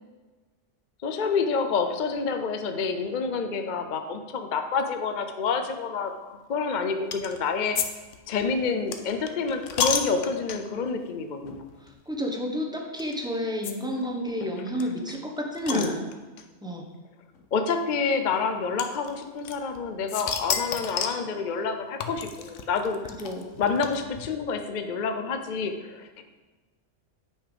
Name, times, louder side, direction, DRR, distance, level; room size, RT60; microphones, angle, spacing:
voice 1, 1.0-7.9 8.3-11.6 15.7-15.9 17.5-23.0 23.6-26.2, left 5 dB, 50° left, 7 dB, 0.7 m, -28 dB
sound 1, 7.1-7.4 7.8-7.9 8.1-10.8 11.5-11.6 11.9-12.0 13.0-13.1 13.6-13.7 14.0-14.1 14.3-14.4 14.8-16.4 17.3-17.4 18.8-19.8 20.1-21.3 22.0-24.3, left 7 dB, 80° left, 1.1 m, -31 dB
voice 2, 11.8-16.1 16.6-16.8 23.2-23.5, equal, 5° right, 0 dB, 1.1 m, -31 dB
8.9 x 5.6 x 5.1 m, 1.2 s
omnidirectional pair, 1.3 m